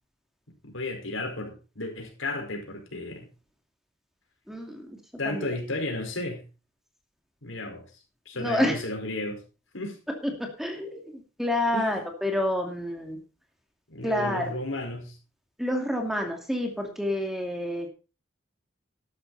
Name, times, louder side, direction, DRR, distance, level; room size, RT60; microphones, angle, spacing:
voice 1, 0.6-3.3 5.2-6.4 7.4-7.9 8.2-9.4 9.7-10.0 11.7-12.0 13.9-15.2, left 2 dB, 80° left, 3 dB, 4.9 m, -33 dB
voice 2, 4.5-4.8 5.2-5.4 8.4-8.8 10.2-10.3 10.6-13.2 14.0-14.4 15.6-17.9, left 1 dB, ahead, 3 dB, 2.5 m, -28 dB
13.0 x 12.0 x 4.2 m, 0.33 s
head